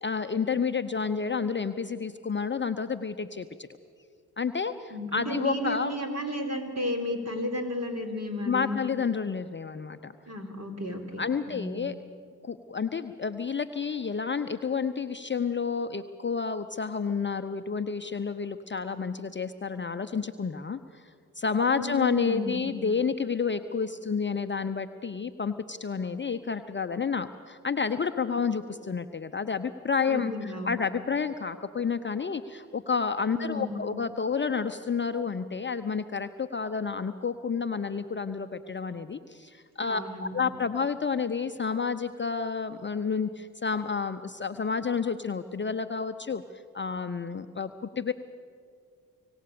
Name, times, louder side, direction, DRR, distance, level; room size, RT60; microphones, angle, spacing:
voice 1, 0.0-3.7 4.4-5.9 8.4-10.1 11.2-12.0 12.4-21.1 21.3-46.4 46.7-47.7 48.0-48.1, left 5 dB, 25° left, 9 dB, 0.8 m, -30 dB
voice 2, 4.9-8.8 10.3-11.2 11.5-11.8 21.7-22.7 30.1-30.8 33.3-33.8 39.8-40.5, left 1 dB, 35° right, 3 dB, 3.8 m, -33 dB
25.5 x 17.0 x 6.9 m, 2.1 s
hypercardioid pair, 40°, 42 cm